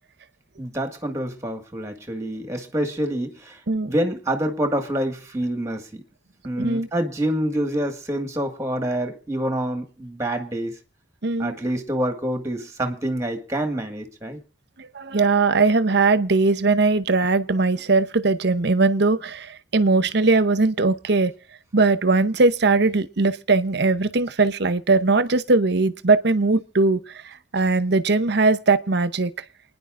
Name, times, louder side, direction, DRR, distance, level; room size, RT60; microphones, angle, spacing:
voice 1, 0.6-6.0 6.4-10.8 11.4-14.4, right 1 dB, 15° right, 1.8 m, -27 dB
voice 2, 6.5-6.9 11.2-11.5 14.8-21.3 21.7-27.0 27.5-29.3, right 3 dB, 60° right, 0.8 m, -20 dB
28.5 x 10.0 x 2.5 m
head